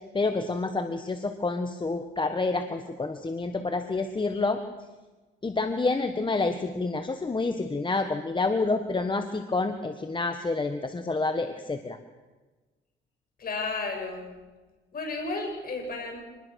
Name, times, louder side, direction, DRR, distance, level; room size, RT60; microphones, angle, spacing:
voice 1, 0.1-4.6 5.4-12.0, left 3 dB, 25° left, 7 dB, 1.5 m, -28 dB
voice 2, 13.4-14.3 14.9-16.2, left 3 dB, 50° left, 2 dB, 7.9 m, -32 dB
26.0 x 20.5 x 6.5 m, 1.2 s
cardioid pair, 90°, 20 cm